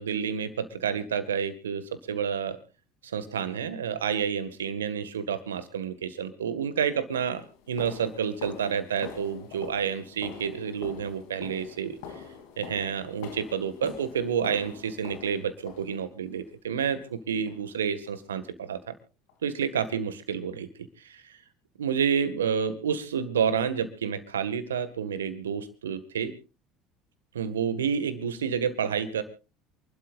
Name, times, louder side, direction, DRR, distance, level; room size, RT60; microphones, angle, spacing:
voice 1, 0.0-2.6 3.0-7.4 7.7-12.2 12.6-18.9 19.4-20.7 21.0-21.2 21.8-26.3 27.3-29.2, right 7 dB, 90° right, 11 dB, 1.8 m, -29 dB
sound 1, 6.5-6.6 7.2-16.4 16.8-17.2 17.5-17.7 18.1-18.2 18.7-18.8 19.3-19.4, left 6 dB, 70° left, 3.1 m, -45 dB
28.0 x 12.5 x 2.6 m, 0.32 s
hypercardioid pair, 70°, 0 cm